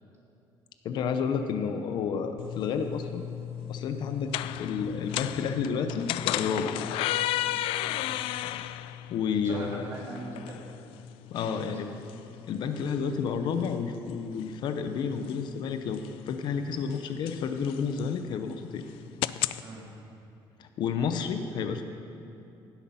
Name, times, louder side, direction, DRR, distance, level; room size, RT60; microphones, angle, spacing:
voice 1, 0.8-3.2 3.7-6.8 9.1-9.9 11.3-11.9 12.4-18.9 20.6-21.8, left 6 dB, 55° left, 8 dB, 0.7 m, -31 dB
sound 1, 2.4-19.6, left 13 dB, 85° left, 0.3 m, -35 dB
voice 2, 9.4-10.7 11.4-11.8 19.6-20.0, right 2 dB, 30° right, -4 dB, 3.0 m, -41 dB
17.0 x 8.2 x 5.6 m, 2.6 s
cardioid pair, 155°, 9 cm